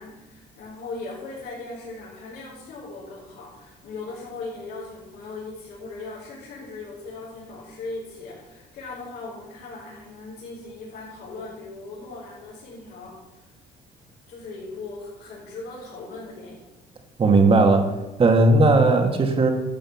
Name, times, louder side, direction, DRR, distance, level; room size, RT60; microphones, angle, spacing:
voice 1, 0.0-13.5 14.3-16.6, left 3 dB, 65° left, -7 dB, 4.5 m, -38 dB
voice 2, 17.2-17.9 18.2-19.5, right 2 dB, 35° right, 4 dB, 2.1 m, -17 dB
12.5 x 6.4 x 7.4 m, 1.0 s
cardioid pair, 110°, 17 cm